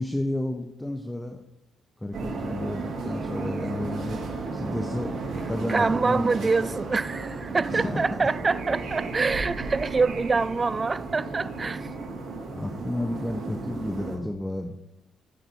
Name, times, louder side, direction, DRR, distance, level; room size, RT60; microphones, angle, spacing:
voice 1, 0.0-1.4 2.0-4.2 4.5-5.1 5.5-6.5 7.7-8.0 12.5-15.0, left 1 dB, 10° left, 1.0 m, -31 dB
sound 1, 2.1-14.2, right 3 dB, 60° right, 3.7 m, -34 dB
voice 2, 5.7-11.9, right 4 dB, 30° right, 0.4 m, -25 dB
14.5 x 7.7 x 4.6 m
cardioid pair, 90°, 0 cm